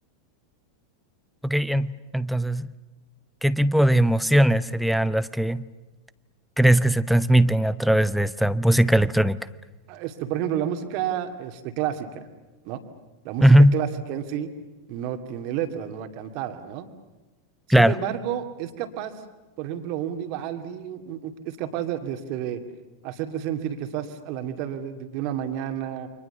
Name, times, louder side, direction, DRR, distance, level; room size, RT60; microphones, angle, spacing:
voice 1, 1.4-2.7 3.4-5.6 6.6-9.4 13.4-13.8 17.7-17.9, right 1 dB, ahead, 16 dB, 0.8 m, -19 dB
voice 2, 9.9-12.2 12.6-12.8 13.2-13.4 13.7-14.5 14.9-16.9 17.8-19.2 19.6-22.6 23.0-26.1, right 10 dB, 45° right, 7 dB, 2.4 m, -30 dB
29.5 x 26.0 x 7.0 m, 1.1 s
figure-of-eight pair, 90°, 0 cm